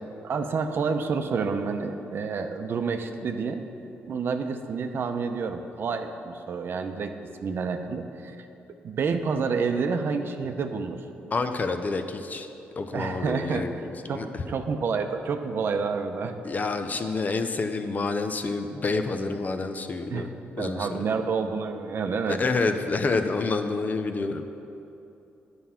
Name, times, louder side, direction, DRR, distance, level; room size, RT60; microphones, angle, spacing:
voice 1, 0.2-3.6 4.1-7.1 7.4-8.5 8.8-11.0 12.9-13.7 14.1-16.4 20.1-20.3 20.6-22.4, right 5 dB, 60° right, 7 dB, 0.7 m, -29 dB
voice 2, 11.3-12.5 12.8-13.8 14.0-14.5 16.4-20.3 20.6-21.1 22.3-24.4, left 3 dB, 40° left, 7 dB, 0.7 m, -28 dB
9.4 x 6.1 x 5.7 m, 2.8 s
cardioid pair, 75°, 4 cm